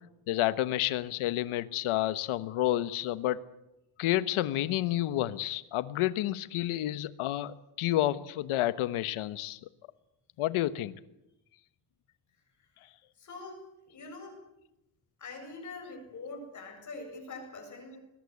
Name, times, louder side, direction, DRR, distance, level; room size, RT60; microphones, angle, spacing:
voice 1, 0.3-3.4 4.0-9.6 10.4-10.9, left 14 dB, 75° left, 14 dB, 1.3 m, -30 dB
voice 2, 13.2-14.4 15.2-18.0, left 3 dB, 35° left, 2 dB, 7.7 m, -44 dB
21.5 x 20.5 x 8.3 m, 0.88 s
cardioid pair, 175°, 50 cm